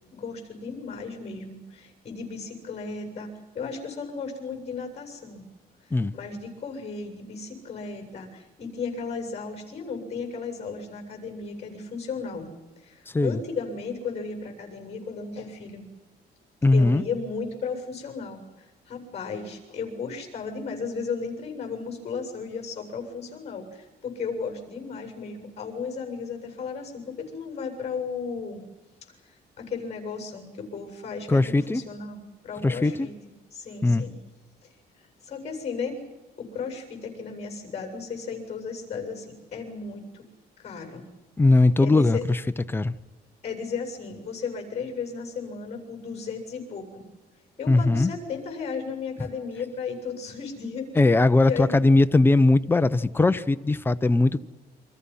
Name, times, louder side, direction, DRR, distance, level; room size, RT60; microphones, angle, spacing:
voice 1, 0.1-5.5 5.8-12.5 12.8-15.9 16.7-28.6 29.6-33.1 33.5-34.1 35.2-36.0 36.4-40.3 40.6-41.1 41.8-42.2 43.4-47.0 47.6-50.9 51.4-51.8, left 5 dB, 40° left, 7.7 m, -35 dB
voice 2, 16.6-17.0 31.3-31.8 32.6-33.1 33.8-34.0 41.4-42.4 42.7-42.9 47.7-48.1 51.0-54.4, left 2 dB, 15° left, 0.8 m, -20 dB
30.0 x 25.0 x 5.7 m
cardioid pair, 130°, 17 cm